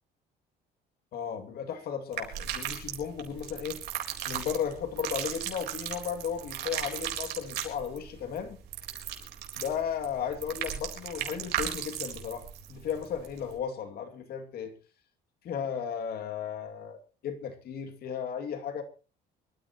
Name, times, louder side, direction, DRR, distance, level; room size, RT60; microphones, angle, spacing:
voice 1, 1.1-3.8 4.3-8.6 9.6-12.4 12.7-14.7 15.4-18.8, left 8 dB, 65° left, 6 dB, 2.4 m, -35 dB
sound 1, 2.1-13.5, right 10 dB, 75° right, 4.0 m, -36 dB
24.5 x 13.5 x 3.0 m, 0.35 s
cardioid pair, 110°, 17 cm